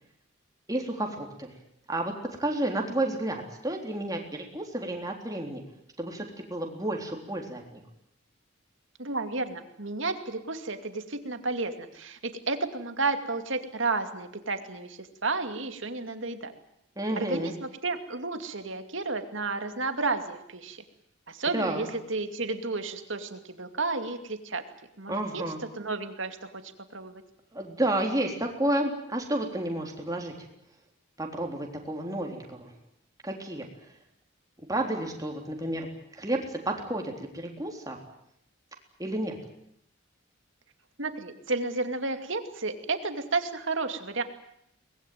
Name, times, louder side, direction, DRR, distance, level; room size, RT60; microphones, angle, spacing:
voice 1, 0.7-1.5 1.9-2.1 2.4-5.6 6.0-7.8 17.0-17.5 21.5-21.9 25.1-25.6 27.5-30.3 31.2-32.7 33.2-33.7 34.6-38.0 39.0-39.4, right 1 dB, 15° right, 2 dB, 3.6 m, -31 dB
voice 2, 9.0-16.5 17.2-20.8 21.3-24.6 25.0-25.4 25.8-26.5 26.9-27.2 41.0-44.2, right 3 dB, 65° right, 7 dB, 2.4 m, -32 dB
24.0 x 20.5 x 9.4 m, 0.75 s
head